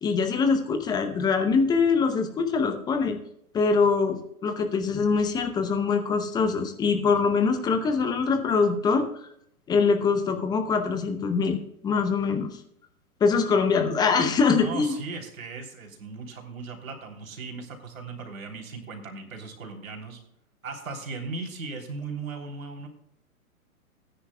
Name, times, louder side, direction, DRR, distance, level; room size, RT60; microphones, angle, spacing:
voice 1, 0.0-3.2 3.5-9.1 9.7-12.6 13.2-14.9, left 5 dB, 10° left, 6 dB, 0.7 m, -23 dB
voice 2, 14.5-20.2 20.6-22.9, right 4 dB, 65° right, 1 dB, 3.3 m, -37 dB
19.0 x 10.0 x 2.3 m, 0.74 s
figure-of-eight pair, 120°, 44 cm